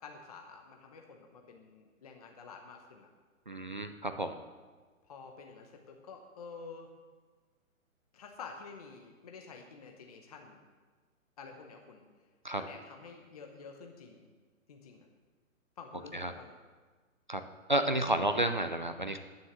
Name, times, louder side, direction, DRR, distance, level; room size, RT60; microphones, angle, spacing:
voice 1, 0.0-3.1 5.1-6.9 8.1-10.6 11.4-12.0 12.5-14.3 14.7-15.1 15.8-16.5, left 5 dB, 25° left, 3 dB, 0.8 m, -49 dB
voice 2, 3.5-4.3 12.4-12.6 16.1-16.3 17.3-17.4 17.7-19.2, right 1 dB, 35° right, 8 dB, 0.4 m, -31 dB
9.5 x 9.3 x 7.5 m, 1.4 s
hypercardioid pair, 170°, 42 cm